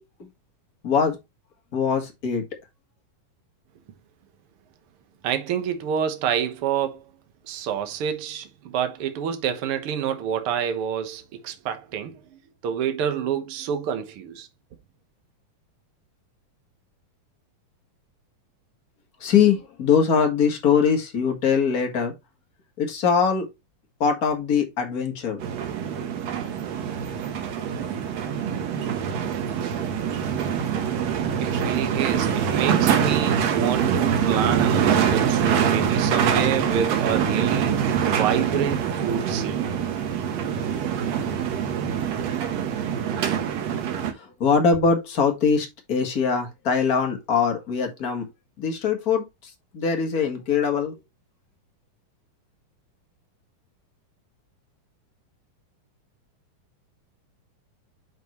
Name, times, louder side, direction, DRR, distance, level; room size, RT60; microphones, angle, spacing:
voice 1, 0.8-1.1 1.7-2.4 19.2-22.1 22.8-23.5 24.0-25.4 44.1-48.3 48.6-49.2 49.7-50.9, left 6 dB, 55° left, 0.9 m, -22 dB
voice 2, 5.2-7.1 7.4-14.5 31.4-39.7, right 8 dB, 85° right, 1.2 m, -28 dB
sound 1, 25.4-44.1, right 8 dB, 60° right, 1.9 m, -24 dB
7.3 x 5.4 x 3.0 m
omnidirectional pair, 4.2 m